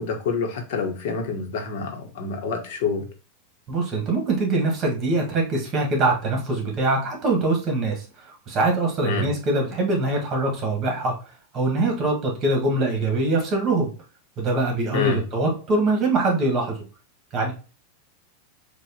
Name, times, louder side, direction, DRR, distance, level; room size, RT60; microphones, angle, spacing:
voice 1, 0.0-3.1 9.0-9.3 14.9-15.2, left 4 dB, 65° left, 4 dB, 1.1 m, -27 dB
voice 2, 3.7-11.1 11.5-13.9 14.4-16.8 17.3-17.5, right 2 dB, 30° right, 1 dB, 1.6 m, -23 dB
4.7 x 2.4 x 4.3 m, 0.35 s
supercardioid pair, 145°, 0 cm